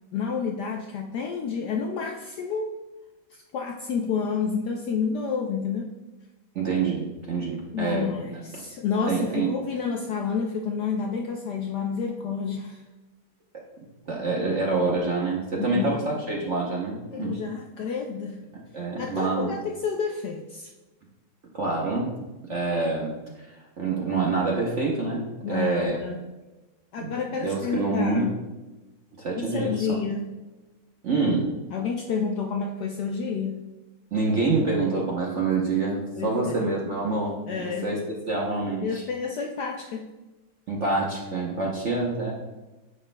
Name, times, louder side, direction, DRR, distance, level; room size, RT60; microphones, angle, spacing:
voice 1, 0.1-2.8 3.5-5.9 7.7-12.8 15.6-16.0 17.1-18.4 19.0-20.7 25.4-26.2 26.9-28.4 29.4-30.3 31.7-33.6 36.2-36.4 37.5-38.0 38.8-40.1, left 5 dB, 75° left, 2 dB, 1.0 m, -29 dB
voice 2, 6.5-8.1 8.5-8.6 9.1-9.5 14.1-17.4 18.5-19.5 21.5-22.1 22.5-23.1 23.4-26.0 27.0-27.1 27.4-28.3 29.1-29.9 31.0-31.5 34.1-38.0 38.3-39.0 40.7-42.3, right 3 dB, 50° right, -2 dB, 0.9 m, -26 dB
9.5 x 6.6 x 2.2 m, 1.1 s
omnidirectional pair, 2.3 m